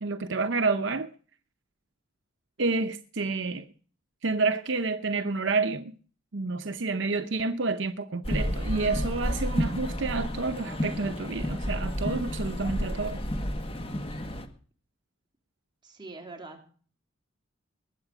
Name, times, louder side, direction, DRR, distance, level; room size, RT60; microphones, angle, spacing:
voice 1, 0.0-1.1 2.6-3.7 4.2-5.9 6.3-13.2, right 3 dB, 65° right, 0.8 m, -29 dB
sound 1, 8.2-14.5, equal, 30° left, 1.6 m, -31 dB
voice 2, 15.8-16.7, right 3 dB, 25° right, 3.4 m, -43 dB
20.0 x 9.0 x 4.9 m
head